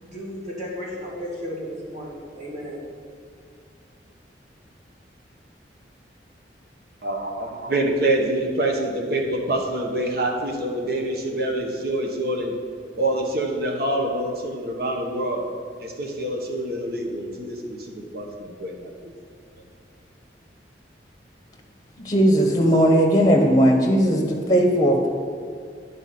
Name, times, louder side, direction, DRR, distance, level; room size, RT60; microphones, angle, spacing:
voice 1, 0.0-2.8, equal, 45° right, -5 dB, 2.2 m, -34 dB
voice 2, 7.0-12.5 12.9-15.4 15.8-19.1, right 1 dB, 60° right, 1 dB, 1.1 m, -26 dB
voice 3, 22.0-25.1, equal, 20° left, 2 dB, 0.9 m, -18 dB
9.2 x 4.0 x 5.9 m, 2.4 s
head